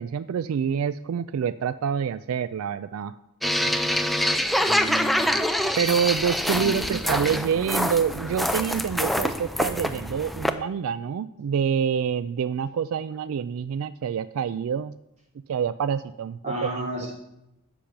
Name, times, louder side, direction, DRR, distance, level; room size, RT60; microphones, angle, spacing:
voice 1, 0.0-3.1 5.8-15.0 15.5-16.7, right 7 dB, 80° right, 15 dB, 0.3 m, -27 dB
sound 1, 3.4-10.5, equal, ahead, 0.4 m, -25 dB
voice 2, 4.6-5.4 6.5-7.5 16.4-17.1, right 1 dB, 30° right, -1 dB, 2.7 m, -33 dB
10.0 x 7.0 x 5.9 m, 0.87 s
head